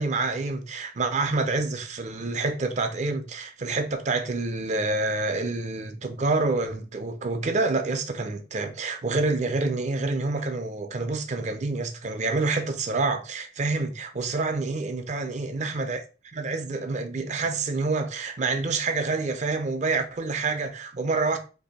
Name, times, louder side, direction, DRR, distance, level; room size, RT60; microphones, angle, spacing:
voice 1, 0.0-16.0 16.3-21.4, right 3 dB, 40° right, 0.4 m, -27 dB
2.6 x 2.5 x 4.0 m
head